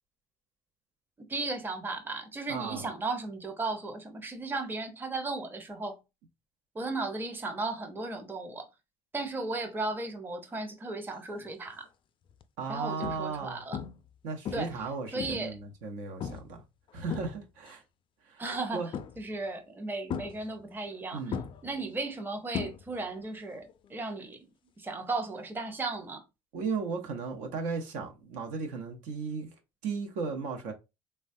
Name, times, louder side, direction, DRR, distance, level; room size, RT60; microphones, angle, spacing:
voice 1, 1.2-6.0 6.7-8.7 9.1-11.9 12.7-13.8 14.5-14.7 15.1-15.6 18.4-18.8 19.2-21.2 21.6-24.4 24.8-26.2, right 3 dB, 15° right, 0.6 m, -35 dB
voice 2, 2.5-2.8 12.6-13.6 14.2-16.6 16.9-17.8 18.2-18.4 18.7-18.9 21.1-21.4 26.5-29.5 29.8-30.7, right 4 dB, 80° right, 0.7 m, -35 dB
sound 1, 11.4-11.7 12.3-12.4 13.0-13.4 13.7-14.1 14.5-15.6 16.2-16.6 16.9-17.7 18.9-19.4 20.1-21.0 21.3-23.2 23.5-23.9 25.9-26.0, left 7 dB, 40° left, 0.3 m, -38 dB
3.2 x 2.2 x 2.5 m
supercardioid pair, 95°, 13 cm